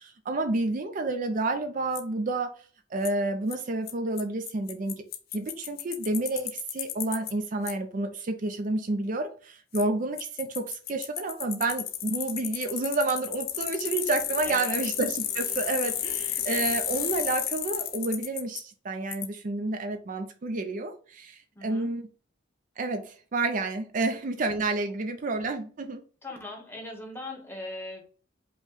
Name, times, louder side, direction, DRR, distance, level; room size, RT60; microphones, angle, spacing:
voice 1, 0.0-2.6 2.9-5.0 5.3-22.0 22.8-26.0, right 2 dB, 45° right, 0.4 m, -30 dB
Bicycle, 2.0-2.1 3.1-3.2 3.5-3.6 3.9-4.0 4.2-4.3 4.5-7.3 7.7-7.8 9.7-9.8 10.2-18.6 19.1-19.3, left 11 dB, 50° left, 0.6 m, -32 dB
voice 2, 14.4-14.8 21.5-21.9 26.2-28.0, left 1 dB, 10° left, 1.0 m, -39 dB
5.2 x 2.2 x 3.8 m
head